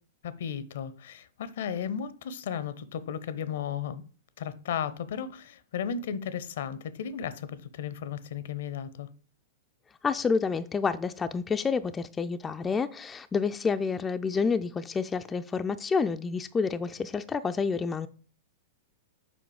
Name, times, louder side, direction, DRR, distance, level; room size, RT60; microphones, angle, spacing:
voice 1, 0.2-4.0 4.4-9.1, left 8 dB, 60° left, 0.6 m, -35 dB
voice 2, 10.0-18.1, left 5 dB, 15° left, 0.4 m, -29 dB
7.0 x 5.0 x 4.9 m
figure-of-eight pair, 100°, 0 cm